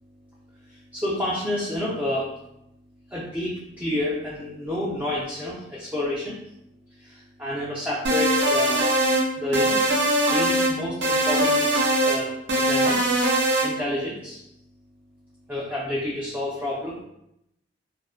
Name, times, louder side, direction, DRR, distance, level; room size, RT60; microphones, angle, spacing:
voice 1, 0.9-2.3 3.1-6.4 7.0-8.9 9.4-9.8 10.2-14.4 15.5-16.9, left 1 dB, 10° right, -7 dB, 0.3 m, -29 dB
sound 1, 8.0-9.2 9.5-10.7 11.0-12.2 12.5-13.7, right 1 dB, 65° right, 0.5 m, -21 dB
2.5 x 2.1 x 2.4 m, 0.83 s
head